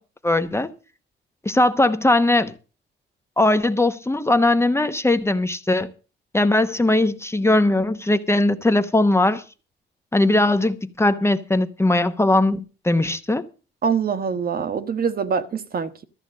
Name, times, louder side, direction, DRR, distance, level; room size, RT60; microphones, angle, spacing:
voice 1, 0.2-0.7 1.4-2.5 3.4-5.9 6.3-9.4 10.1-13.4, left 2 dB, 15° left, 1.0 m, -19 dB
voice 2, 13.8-16.0, right 6 dB, 50° right, 1.4 m, -24 dB
13.5 x 6.9 x 7.6 m
cardioid pair, 90°, 20 cm